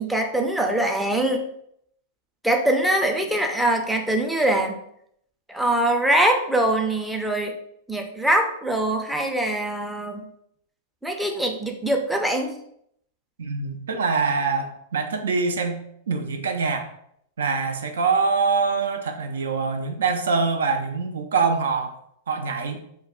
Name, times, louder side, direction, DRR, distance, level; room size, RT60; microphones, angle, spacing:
voice 1, 0.0-1.4 2.4-4.8 5.5-7.5 7.9-10.3 11.0-12.5, right 1 dB, ahead, 2 dB, 0.4 m, -23 dB
voice 2, 13.4-16.9 17.4-22.0 22.3-22.8, right 4 dB, 80° right, 6 dB, 0.3 m, -24 dB
2.2 x 2.1 x 3.6 m, 0.72 s
hypercardioid pair, 105°, 0 cm